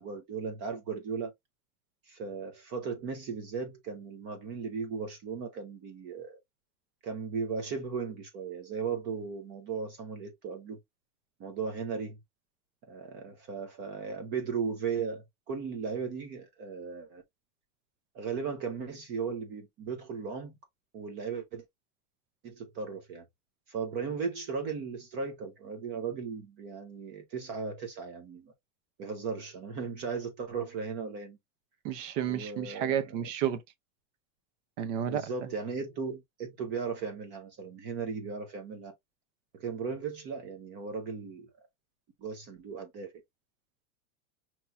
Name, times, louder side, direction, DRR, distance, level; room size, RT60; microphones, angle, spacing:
voice 1, 0.0-1.3 2.1-6.4 7.0-10.8 11.4-12.2 12.9-17.2 18.1-20.5 20.9-21.6 22.4-23.2 23.7-28.5 29.0-31.4 32.3-33.2 35.1-38.9 39.5-41.5 42.2-43.1, right 5 dB, 25° right, 0.6 m, -36 dB
voice 2, 31.8-33.6 34.8-35.2, right 9 dB, 55° right, 0.8 m, -31 dB
5.5 x 3.0 x 2.3 m
supercardioid pair, 175°, 43 cm